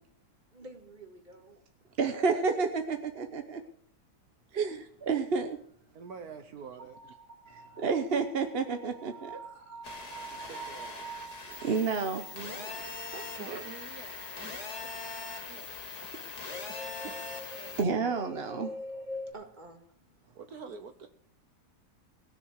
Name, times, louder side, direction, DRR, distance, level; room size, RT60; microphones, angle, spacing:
voice 1, 0.5-1.6 7.7-7.9 9.4-9.7 12.3-13.6 16.4-16.8 19.1-20.2, right 3 dB, 30° right, 5 dB, 2.1 m, -49 dB
voice 2, 2.0-3.6 4.5-5.6 7.8-9.4 10.4-10.7 11.6-12.2 13.5-13.6 17.8-18.7, right 5 dB, 45° right, 6 dB, 1.0 m, -30 dB
voice 3, 5.9-7.0 10.3-11.0 13.4-14.6 15.4-16.1 17.6-17.8 20.4-21.1, right 6 dB, 65° right, 8 dB, 1.4 m, -47 dB
sound 1, 6.8-19.3, right 1 dB, 85° right, 3.6 m, -46 dB
sound 2, 9.8-17.8, left 4 dB, 70° left, 2.7 m, -42 dB
19.5 x 6.7 x 6.5 m, 0.68 s
omnidirectional pair, 1.8 m